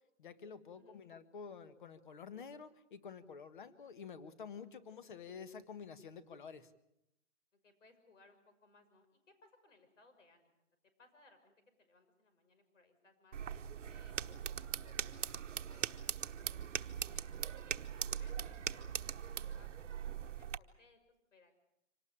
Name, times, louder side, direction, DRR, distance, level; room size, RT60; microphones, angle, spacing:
voice 1, 0.2-6.7, left 6 dB, 40° left, 12 dB, 1.6 m, -49 dB
voice 2, 7.6-10.6 11.0-18.9 19.2-21.0 21.3-21.6, left 3 dB, 80° left, 8 dB, 6.3 m, -67 dB
sound 1, 13.3-20.6, right 8 dB, 80° right, 1.1 m, -41 dB
26.0 x 18.5 x 8.7 m, 0.84 s
hypercardioid pair, 180°, 37 cm